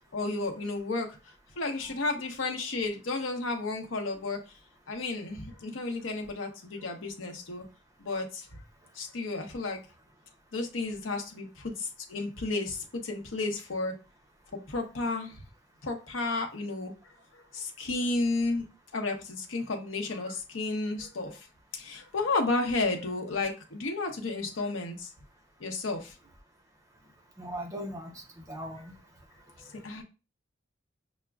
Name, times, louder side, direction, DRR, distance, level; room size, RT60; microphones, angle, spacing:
voice 1, 0.1-1.2 1.6-4.4 4.9-7.6 8.0-8.6 8.9-9.8 10.5-13.9 14.5-15.4 15.8-16.9 17.3-18.6 18.9-21.5 21.8-25.1 25.6-26.1 28.8-28.9 29.7-30.0, left 3 dB, 85° left, 4 dB, 0.8 m, -32 dB
voice 2, 27.4-28.9, equal, 15° right, 1 dB, 0.6 m, -39 dB
5.8 x 2.1 x 2.3 m, 0.31 s
head